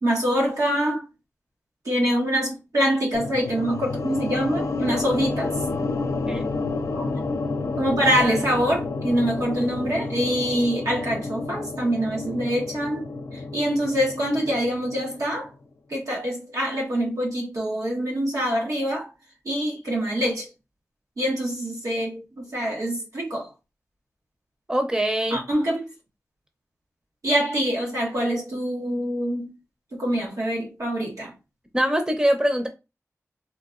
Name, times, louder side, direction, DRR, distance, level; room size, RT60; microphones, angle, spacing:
voice 1, 0.0-1.0 1.8-5.5 6.9-7.1 7.8-13.1 13.3-15.5 15.9-19.1 19.4-20.5 21.2-23.5 25.3-25.8 27.2-29.6 29.9-31.3, equal, 90° right, 1.3 m, -25 dB
sound 1, 3.1-15.4, left 3 dB, 90° left, 0.5 m, -30 dB
voice 2, 24.7-25.4 31.7-32.7, equal, 15° right, 0.7 m, -23 dB
3.8 x 2.5 x 2.4 m
wide cardioid pair, 70°, 5 cm